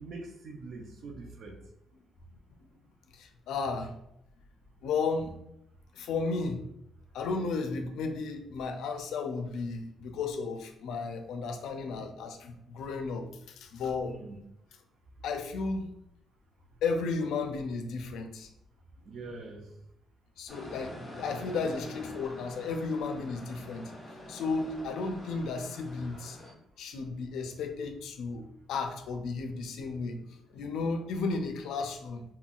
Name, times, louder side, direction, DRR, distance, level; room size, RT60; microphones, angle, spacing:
voice 1, 0.0-1.6 14.0-14.4 19.0-19.7, right 3 dB, 65° right, 1 dB, 0.4 m, -43 dB
voice 2, 3.1-3.9 4.8-5.4 5.9-6.6 7.1-14.2 15.2-15.9 16.8-18.5 20.4-23.9 24.3-26.4 26.8-30.2 30.5-32.2, left 4 dB, 80° left, 5 dB, 0.4 m, -34 dB
sound 1, 20.5-26.5, left 1 dB, 10° left, 1.1 m, -46 dB
3.6 x 2.2 x 2.3 m, 0.79 s
cardioid pair, 90°, 0 cm